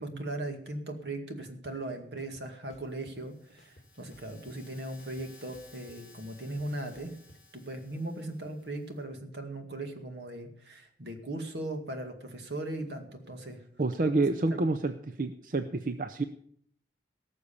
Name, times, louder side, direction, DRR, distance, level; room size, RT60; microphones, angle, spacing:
voice 1, 0.0-7.1 7.5-13.6 14.0-14.1 14.4-14.6, right 1 dB, 75° right, 5 dB, 2.1 m, -38 dB
sound 1, 1.6-1.7 2.2-3.2 3.6-4.7 5.0-7.4, left 1 dB, 40° left, 1.5 m, -58 dB
sound 2, 2.9-9.0, left 3 dB, 5° right, 3.8 m, -58 dB
voice 2, 13.8-16.2, right 2 dB, 50° right, 8 dB, 0.6 m, -29 dB
18.0 x 6.8 x 7.0 m, 0.64 s
head